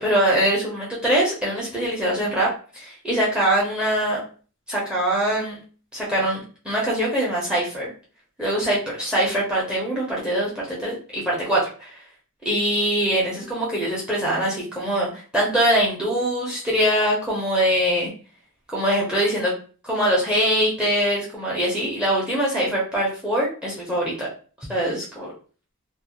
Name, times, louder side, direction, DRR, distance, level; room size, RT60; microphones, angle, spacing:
voice 1, 0.0-2.5 2.7-4.2 4.7-5.6 5.9-7.9 8.4-12.0 12.4-18.1 18.7-19.5 19.8-24.3 24.7-25.3, right 1 dB, 5° right, -5 dB, 0.6 m, -23 dB
2.4 x 2.0 x 2.8 m, 0.39 s
head